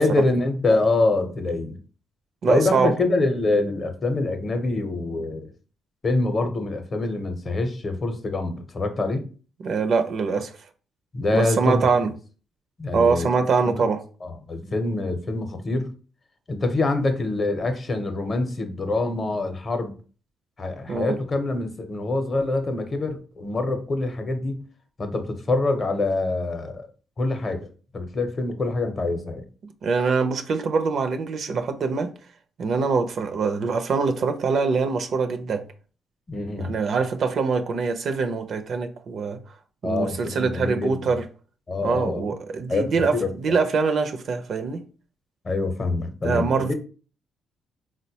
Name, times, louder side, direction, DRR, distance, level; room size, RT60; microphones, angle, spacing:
voice 1, 0.0-1.8 2.5-5.5 6.0-9.2 11.1-11.9 12.8-13.3 13.7-13.9 14.2-15.9 16.5-19.9 20.6-24.6 25.0-26.9 27.2-27.7 27.9-29.4 36.3-36.7 39.8-41.1 41.7-42.3 42.7-43.3 45.4-46.7, left 2 dB, 35° left, 0.6 m, -25 dB
voice 2, 2.4-2.9 9.6-10.5 11.3-12.1 12.9-14.0 20.9-21.2 29.8-32.1 32.6-35.6 36.6-39.4 39.8-41.3 41.8-44.8 46.2-46.7, right 4 dB, 60° right, 0.4 m, -23 dB
3.9 x 2.1 x 2.8 m
cardioid pair, 90°, 0 cm